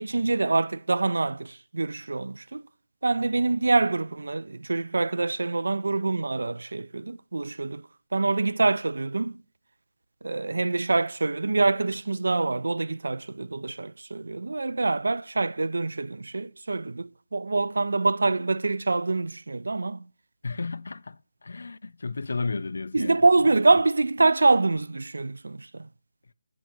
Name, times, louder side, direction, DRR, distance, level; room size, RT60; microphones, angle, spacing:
voice 1, 0.0-2.6 3.0-7.8 8.1-9.4 10.2-20.0 22.9-25.9, right 3 dB, 80° right, 0.3 m, -25 dB
voice 2, 20.4-23.5, left 4 dB, 60° left, 0.4 m, -33 dB
8.6 x 6.2 x 5.8 m
hypercardioid pair, 180°, 0 cm